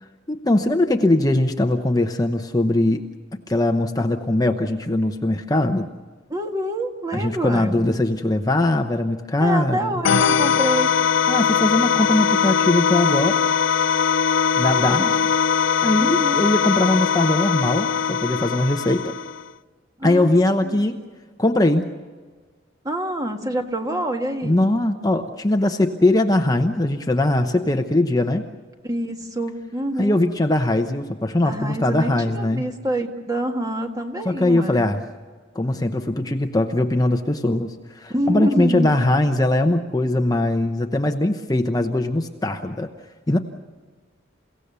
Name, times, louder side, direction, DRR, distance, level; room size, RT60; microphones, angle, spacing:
voice 1, 0.3-3.1 3.5-5.9 7.1-9.9 11.3-13.4 14.6-15.0 15.8-19.1 20.0-21.0 21.4-21.9 24.4-28.4 30.0-32.6 34.2-35.0 35.5-42.9 43.3-43.4, left 1 dB, 20° left, 5 dB, 0.9 m, -21 dB
voice 2, 6.3-7.7 9.4-10.9 14.6-15.1 16.0-16.6 20.0-20.3 20.6-20.8 22.8-24.6 28.8-30.2 31.4-34.8 38.1-38.9, right 1 dB, 20° right, 4 dB, 1.7 m, -27 dB
sound 1, 10.0-19.5, left 7 dB, 65° left, 0.6 m, -20 dB
29.5 x 17.0 x 6.9 m, 1.4 s
head